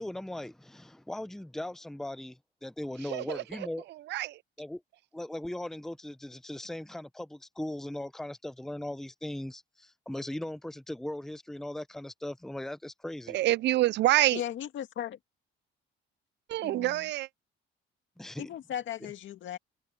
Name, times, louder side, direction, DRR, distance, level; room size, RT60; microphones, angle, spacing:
voice 1, 0.0-3.9 4.6-4.8 5.1-13.4 18.2-18.5 19.0-19.1, left 1 dB, ahead, 0.7 m, -39 dB
voice 2, 3.1-3.4 4.1-4.4 13.3-14.4 16.5-17.3, right 15 dB, 55° right, 0.4 m, -26 dB
voice 3, 14.3-15.2 16.6-17.1 18.4-19.6, left 10 dB, 65° left, 2.1 m, -37 dB
cardioid pair, 105°, 21 cm